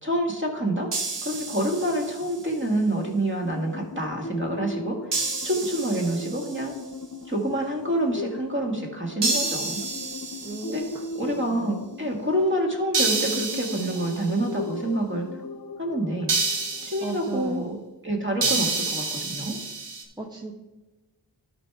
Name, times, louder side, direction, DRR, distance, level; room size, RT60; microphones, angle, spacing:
voice 1, 0.0-0.9 1.2-5.0 5.4-6.7 7.3-9.8 10.7-10.9 11.1-15.3 15.8-16.3 16.8-17.7 18.0-19.6, right 1 dB, 30° right, 1 dB, 2.1 m, -27 dB
sound 1, 0.9-2.4 5.1-6.7 9.2-11.1 12.9-14.4 16.3-17.2 18.4-20.0, right 3 dB, 80° right, 1.4 m, -29 dB
sound 2, 3.4-17.8, left 2 dB, 45° left, 0.9 m, -39 dB
voice 2, 10.4-11.7 17.0-17.8 20.2-20.6, right 3 dB, 10° right, -1 dB, 1.2 m, -36 dB
13.0 x 5.3 x 3.6 m, 1.1 s
cardioid pair, 50°, 42 cm